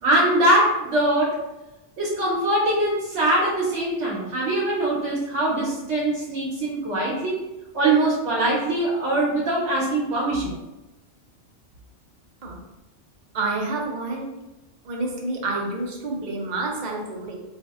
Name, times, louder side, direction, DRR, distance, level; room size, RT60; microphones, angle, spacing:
voice 1, 0.0-1.4 2.0-7.4 7.7-10.6, right 1 dB, 85° right, -6 dB, 1.1 m, -22 dB
voice 2, 13.3-14.3 14.8-17.3, right 2 dB, 50° right, 0 dB, 0.6 m, -28 dB
4.2 x 2.6 x 2.3 m, 0.99 s
omnidirectional pair, 1.2 m